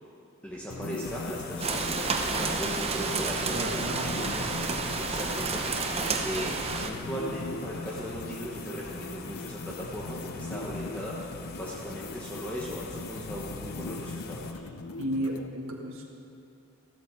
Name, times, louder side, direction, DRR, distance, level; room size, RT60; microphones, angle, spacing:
voice 1, 0.4-4.7 5.0-5.8 6.2-11.3 11.6-14.6, equal, 5° left, -6 dB, 1.2 m, -38 dB
sound 1, 0.7-15.5, left 3 dB, 80° left, 0.7 m, -40 dB
sound 2, 1.0-14.5, left 3 dB, 45° left, 0.8 m, -44 dB
Rain, 1.6-6.9, right 4 dB, 25° right, 0.8 m, -30 dB
voice 2, 3.5-4.8 15.0-16.0, equal, 70° right, 0 dB, 1.4 m, -34 dB
14.0 x 14.0 x 4.7 m, 2.7 s
head